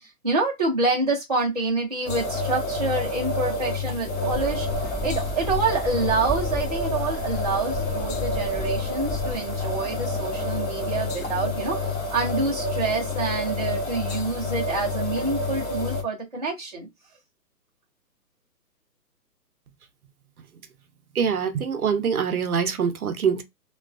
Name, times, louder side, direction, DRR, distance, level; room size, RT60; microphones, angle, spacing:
voice 1, 0.0-16.9, right 3 dB, 25° right, 0.5 m, -27 dB
sound 1, 2.0-16.0, left 3 dB, 45° left, 1.0 m, -28 dB
sound 2, 4.3-10.6, right 2 dB, 15° left, 0.9 m, -35 dB
voice 2, 21.2-23.4, right 6 dB, 65° right, 0.7 m, -24 dB
2.3 x 2.2 x 2.4 m
hypercardioid pair, 165°, 48 cm